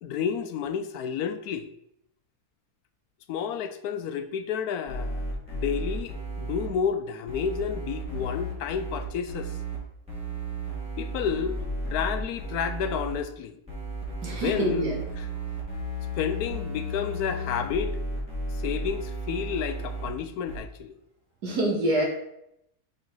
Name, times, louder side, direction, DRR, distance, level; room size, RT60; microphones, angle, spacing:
voice 1, 0.0-1.7 3.3-9.6 11.0-11.6 11.9-13.6 14.3-14.9 15.2-15.3 16.1-18.0 18.5-21.0, left 7 dB, 75° left, 10 dB, 1.0 m, -31 dB
sound 1, 4.9-6.7 7.3-9.8 10.1-13.1 13.7-20.1 20.5-20.6, right 1 dB, 5° right, 2.2 m, -34 dB
voice 2, 14.2-15.0 21.4-22.1, right 1 dB, 85° right, -1 dB, 2.1 m, -26 dB
5.0 x 4.9 x 4.5 m, 0.78 s
omnidirectional pair, 1.7 m